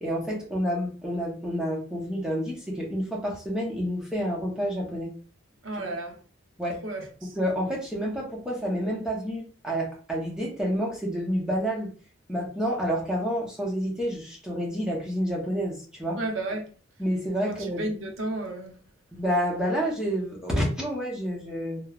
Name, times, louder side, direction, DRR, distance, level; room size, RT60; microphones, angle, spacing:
voice 1, 0.0-5.1 5.7-5.8 6.6-6.8 7.4-11.9 12.3-16.2 17.0-17.9 19.1-21.8, equal, 5° right, 0.7 m, -29 dB
voice 2, 5.6-6.2 6.8-7.3 16.2-16.7 17.8-18.8, right 2 dB, 60° right, 0.6 m, -32 dB
3.0 x 2.0 x 2.3 m
head